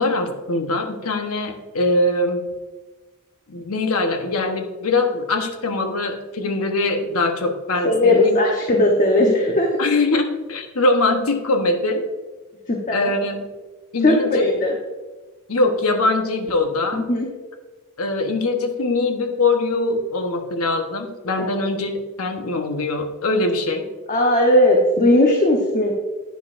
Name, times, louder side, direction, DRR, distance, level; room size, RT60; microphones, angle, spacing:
voice 1, 0.0-2.5 3.5-8.4 9.8-12.0 12.9-13.5 13.9-14.4 15.5-17.0 18.0-23.9, left 2 dB, 75° left, 5 dB, 1.1 m, -22 dB
voice 2, 7.8-9.7 12.7-13.1 14.0-14.8 16.9-17.3 24.1-25.9, left 1 dB, 35° left, 0 dB, 1.0 m, -17 dB
10.0 x 9.7 x 2.6 m, 1.2 s
head